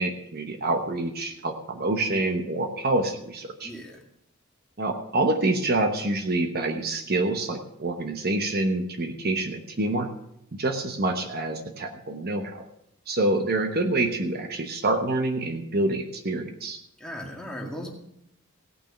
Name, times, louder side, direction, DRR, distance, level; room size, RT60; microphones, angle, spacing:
voice 1, 0.0-3.7 4.8-10.1 10.5-12.5 13.1-16.8, right 2 dB, 50° right, 5 dB, 1.0 m, -27 dB
voice 2, 3.6-4.0 17.0-17.9, equal, 5° left, -1 dB, 2.0 m, -37 dB
16.5 x 6.2 x 6.7 m, 0.79 s
head